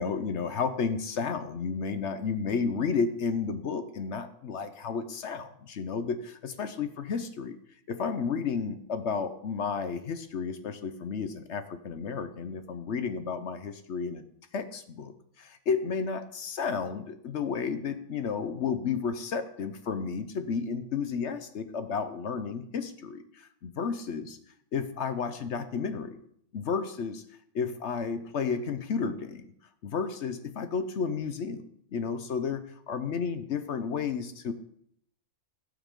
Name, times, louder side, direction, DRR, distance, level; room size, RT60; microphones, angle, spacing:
voice 1, 0.0-7.6 7.9-14.2 14.5-24.4 24.7-26.2 26.5-27.2 27.5-29.4 29.8-34.5, left 5 dB, 55° left, 9 dB, 1.0 m, -32 dB
16.5 x 6.3 x 3.7 m, 0.68 s
omnidirectional pair, 1.5 m